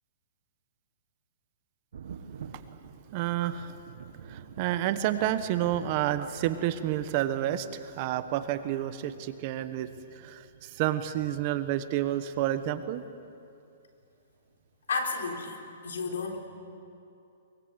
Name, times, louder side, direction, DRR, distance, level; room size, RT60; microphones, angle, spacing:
Thunder, 1.9-13.3 14.6-14.7 15.3-15.4, right 6 dB, 70° right, 1.8 m, -48 dB
voice 1, 2.5-2.8 3.1-3.8 4.2-13.0, right 12 dB, 40° right, 11 dB, 1.2 m, -30 dB
voice 2, 14.9-16.5, left 4 dB, 85° left, 2 dB, 3.7 m, -32 dB
23.0 x 22.5 x 8.2 m, 2.7 s
hypercardioid pair, 150°, 0 cm